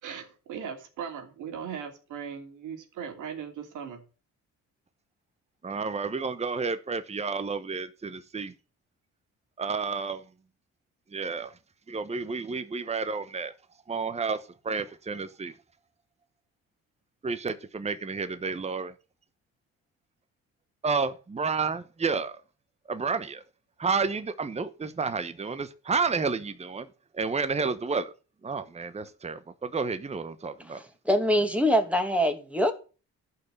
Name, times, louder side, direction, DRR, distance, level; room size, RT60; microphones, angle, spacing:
voice 1, 0.0-4.0, right 7 dB, 80° right, 2.9 m, -38 dB
voice 2, 5.6-8.5 9.6-10.2 11.1-11.5 11.9-13.5 13.9-15.5 17.2-18.9 20.8-22.3 22.9-23.4 23.8-26.9 27.1-28.1 28.4-30.8, right 4 dB, 20° right, 1.0 m, -30 dB
voice 3, 30.7-32.7, equal, 5° right, 2.3 m, -24 dB
11.5 x 5.7 x 6.7 m
cardioid pair, 90°, 30 cm